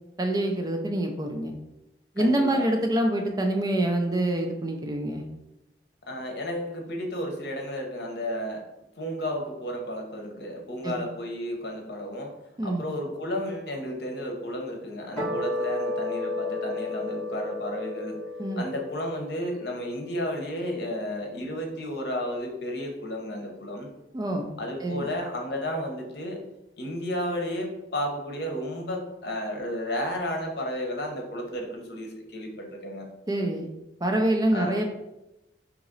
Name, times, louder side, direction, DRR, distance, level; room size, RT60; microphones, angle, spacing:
voice 1, 0.2-1.5 2.2-5.2 10.8-10.9 12.6-12.8 18.4-18.6 24.1-24.5 24.8-25.1 33.3-33.7 34.0-34.9, right 1 dB, 20° right, 3 dB, 0.4 m, -26 dB
voice 2, 2.2-2.7 6.1-8.6 9.0-12.3 12.6-18.2 18.6-23.9 24.6-26.4 26.8-33.1 34.5-34.8, equal, 65° left, 2 dB, 0.8 m, -32 dB
sound 1, 15.2-21.7, left 2 dB, 10° left, 1.5 m, -34 dB
4.0 x 2.9 x 3.9 m, 0.93 s
head